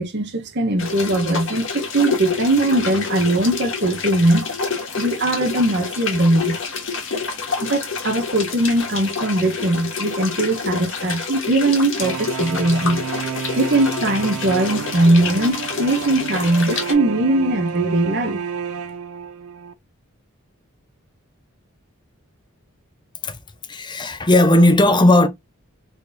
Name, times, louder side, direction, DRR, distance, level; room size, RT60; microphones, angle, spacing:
voice 1, 0.0-4.4 5.0-6.6 7.6-13.0 13.5-18.4, right 1 dB, 50° right, 1.0 m, -20 dB
sound 1, 0.8-16.9, left 5 dB, 60° left, 1.2 m, -28 dB
sound 2, 12.0-19.7, right 7 dB, 85° right, 0.5 m, -31 dB
voice 2, 23.7-25.3, left 1 dB, 20° left, 0.6 m, -15 dB
4.0 x 3.3 x 2.5 m
head